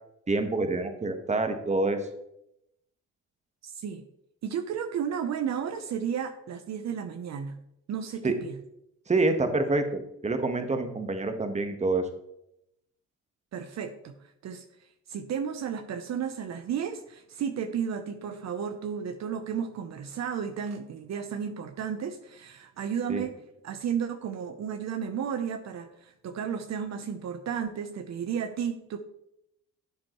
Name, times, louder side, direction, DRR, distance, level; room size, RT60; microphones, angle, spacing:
voice 1, 0.3-2.0 8.2-8.3 9.1-12.1 23.1-23.2, right 3 dB, 25° right, 7 dB, 1.3 m, -27 dB
voice 2, 3.6-4.1 4.4-7.6 7.9-8.6 13.5-14.2 14.4-14.6 15.1-23.3 23.6-29.0, right 7 dB, 60° right, 8 dB, 0.8 m, -33 dB
11.5 x 7.5 x 3.1 m, 0.80 s
cardioid pair, 90°, 30 cm